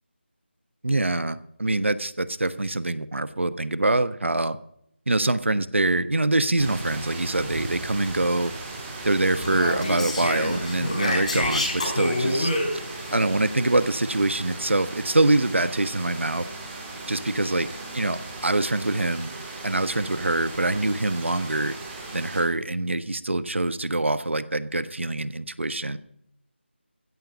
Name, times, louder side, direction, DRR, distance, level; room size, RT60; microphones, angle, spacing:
voice 1, 0.8-4.6 5.1-8.5 9.0-12.5 13.1-16.4 17.1-17.7 17.9-19.3 19.6-21.8 22.1-26.0, right 2 dB, 85° right, 13 dB, 1.3 m, -24 dB
sound 1, 6.6-22.4, right 2 dB, 10° right, 2.9 m, -37 dB
Speech, 9.2-13.1, left 1 dB, 35° left, 4.9 m, -27 dB
16.0 x 13.0 x 5.2 m, 0.74 s
figure-of-eight pair, 170°, 6 cm